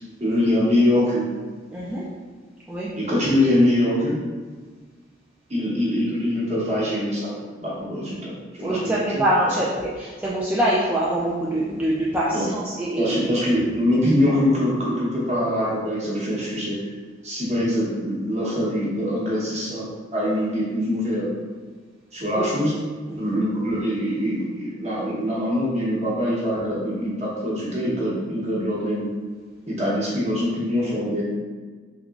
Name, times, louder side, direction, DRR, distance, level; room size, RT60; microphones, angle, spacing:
voice 1, 0.2-1.2 3.0-4.2 5.5-7.3 7.6-8.3 8.6-9.2 12.3-12.5 13.0-16.8 17.2-19.9 20.1-21.3 22.1-22.7 23.2-29.1 29.7-31.2, left 1 dB, 35° right, -6 dB, 0.9 m, -23 dB
voice 2, 1.7-2.0 2.7-2.9 8.6-13.3 22.3-22.5 23.1-23.3, right 1 dB, 5° right, -8 dB, 0.3 m, -24 dB
3.6 x 2.9 x 2.4 m, 1.5 s
head